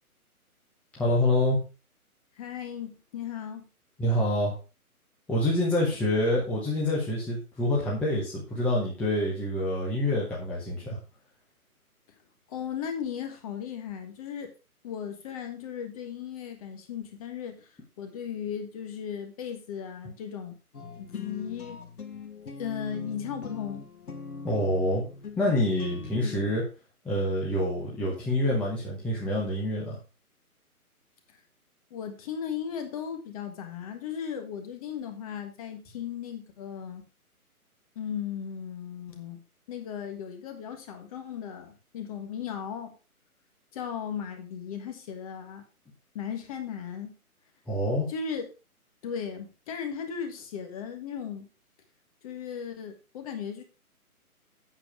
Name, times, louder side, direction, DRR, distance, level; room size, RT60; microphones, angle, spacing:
voice 1, 1.0-1.6 4.0-4.5 5.3-11.0 24.4-25.0 25.4-26.6 27.0-30.0 47.7-48.1, left 1 dB, 5° left, -6 dB, 1.0 m, -26 dB
voice 2, 2.4-3.6 12.5-14.5 14.8-17.7 18.0-20.5 21.0-21.8 22.6-23.8 31.9-37.0 37.9-39.4 39.7-42.9 43.7-45.6 46.1-47.2 48.1-48.5 49.0-51.5 52.2-53.6, left 8 dB, 25° left, 6 dB, 1.5 m, -36 dB
sound 1, 20.7-26.6, left 5 dB, 70° left, 1.6 m, -42 dB
8.3 x 7.3 x 4.9 m, 0.32 s
hypercardioid pair, 150°, 45 cm